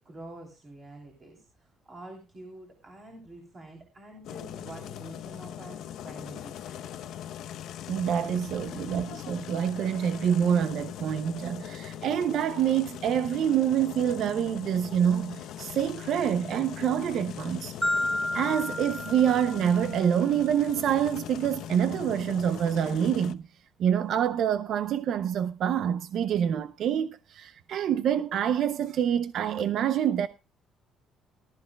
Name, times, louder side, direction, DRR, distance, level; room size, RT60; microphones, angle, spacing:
voice 1, 0.0-7.0, right 1 dB, 25° right, 3.2 m, -47 dB
sound 1, 4.2-23.3, left 10 dB, 65° left, 0.8 m, -40 dB
voice 2, 7.9-17.7 18.3-23.4 23.8-30.3, right 9 dB, 55° right, 0.6 m, -26 dB
Marimba xylophone, 17.8-20.0, left 1 dB, 5° left, 0.9 m, -31 dB
18.5 x 13.0 x 2.3 m
cardioid pair, 165°, 0 cm